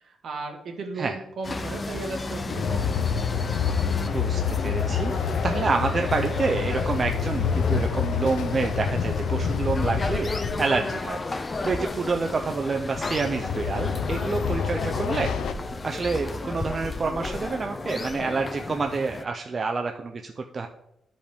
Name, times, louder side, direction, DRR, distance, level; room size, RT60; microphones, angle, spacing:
voice 1, 0.0-3.1, right 3 dB, 55° right, 3 dB, 1.4 m, -35 dB
sound 1, 1.4-19.2, left 3 dB, 25° left, 0.5 m, -33 dB
Train, 2.5-11.0 12.8-15.5, left 6 dB, 85° left, 0.5 m, -27 dB
voice 2, 4.0-10.3 10.6-15.3 15.8-20.7, right 4 dB, 30° right, 4 dB, 0.5 m, -28 dB
12.5 x 5.1 x 3.4 m, 0.83 s
wide cardioid pair, 165°, 0 cm